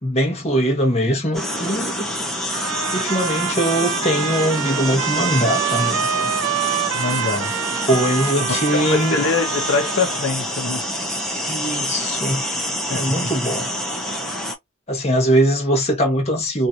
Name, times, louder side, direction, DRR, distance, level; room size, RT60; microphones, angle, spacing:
voice 1, 0.0-2.1 2.9-6.3 7.9-9.2 11.5-12.4 12.9-13.7 14.9-16.7, equal, 30° left, 1.2 m, -21 dB
sound 1, 1.3-14.6, equal, ahead, 0.7 m, -27 dB
sound 2, 2.5-10.3, right 9 dB, 90° right, 0.3 m, -26 dB
voice 2, 6.9-7.5 8.7-10.8 12.9-13.2, left 4 dB, 75° left, 0.9 m, -23 dB
3.0 x 2.7 x 2.5 m
head